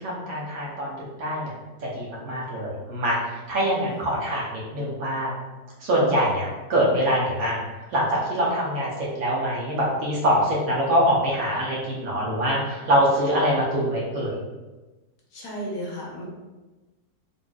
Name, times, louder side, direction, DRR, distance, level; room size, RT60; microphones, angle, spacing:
voice 1, 0.0-1.5 1.8-5.3 5.8-7.6 7.9-14.3, equal, 65° right, -5 dB, 1.1 m, -24 dB
voice 2, 3.6-4.3 8.4-8.9 15.3-16.2, equal, 70° left, -4 dB, 1.4 m, -36 dB
4.1 x 2.7 x 2.2 m, 1.2 s
omnidirectional pair, 1.8 m